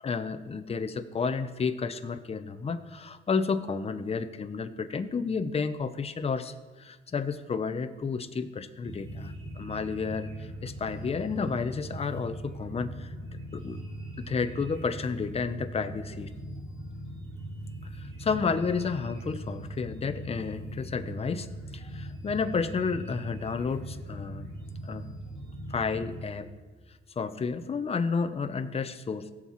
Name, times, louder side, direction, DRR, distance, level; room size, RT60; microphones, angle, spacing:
voice 1, 0.0-13.1 13.5-13.8 14.2-16.3 17.9-24.5 24.8-25.1 25.7-26.5 27.2-29.3, left 5 dB, 30° left, 9 dB, 0.7 m, -31 dB
sound 1, 8.8-26.2, right 1 dB, 80° right, 2.0 m, -40 dB
16.5 x 7.3 x 3.1 m, 1.3 s
cardioid pair, 90°, 20 cm